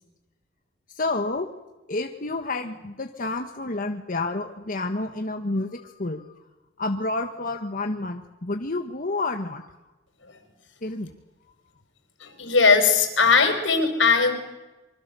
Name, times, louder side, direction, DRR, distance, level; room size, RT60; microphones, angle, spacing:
voice 1, 0.9-1.5 1.9-6.2 6.8-9.7 10.8-11.1, left 2 dB, 50° left, 5 dB, 1.4 m, -29 dB
voice 2, 12.2-14.3, left 5 dB, 85° left, 7 dB, 4.9 m, -19 dB
25.5 x 25.0 x 7.0 m, 1.1 s
head